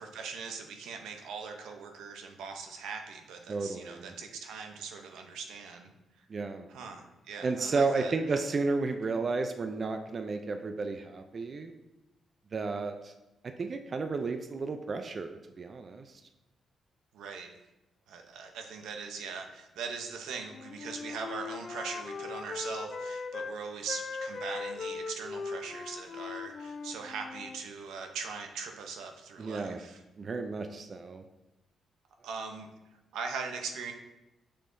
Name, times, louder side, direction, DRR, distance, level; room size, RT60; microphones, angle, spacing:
voice 1, 0.0-5.9 6.7-8.4 17.1-17.5 18.1-30.0 32.2-32.7 33.1-33.9, right 5 dB, 90° right, 4 dB, 0.7 m, -41 dB
voice 2, 3.5-4.1 6.3-6.7 7.4-11.7 12.5-13.1 13.4-16.1 29.4-29.8 30.2-31.2, right 3 dB, 45° right, 7 dB, 0.4 m, -32 dB
Wind instrument woodwind instrument, 20.5-23.5 23.9-27.6, left 4 dB, 50° left, 0.4 m, -39 dB
6.6 x 5.5 x 2.6 m, 0.95 s
cardioid pair, 90°, 0 cm